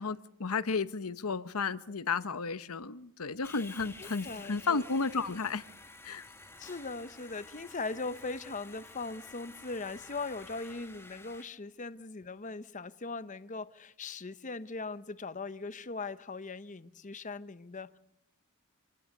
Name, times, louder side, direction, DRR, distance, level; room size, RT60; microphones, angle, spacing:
voice 1, 0.0-5.6 6.0-6.3, left 4 dB, 80° left, 0.9 m, -33 dB
Sawing, 3.4-11.4, left 2 dB, 10° left, 1.4 m, -51 dB
voice 2, 4.0-4.8 6.6-18.0, left 3 dB, 35° left, 0.8 m, -40 dB
26.5 x 20.0 x 6.6 m
head